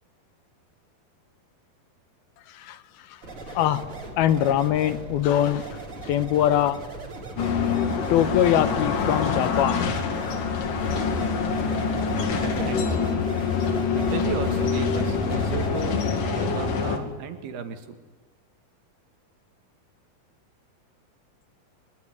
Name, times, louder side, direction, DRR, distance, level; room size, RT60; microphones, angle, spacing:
sound 1, 3.2-16.6, right 2 dB, 35° right, 4.4 m, -38 dB
voice 1, 4.2-5.7 6.1-6.8 8.1-9.9, left 11 dB, 75° left, 13 dB, 2.8 m, -22 dB
sound 2, 7.4-17.0, left 5 dB, 60° left, 3.6 m, -25 dB
voice 2, 12.4-13.0 13.9-18.0, right 6 dB, 75° right, 7 dB, 3.9 m, -35 dB
24.0 x 22.0 x 9.5 m, 1.4 s
omnidirectional pair, 4.6 m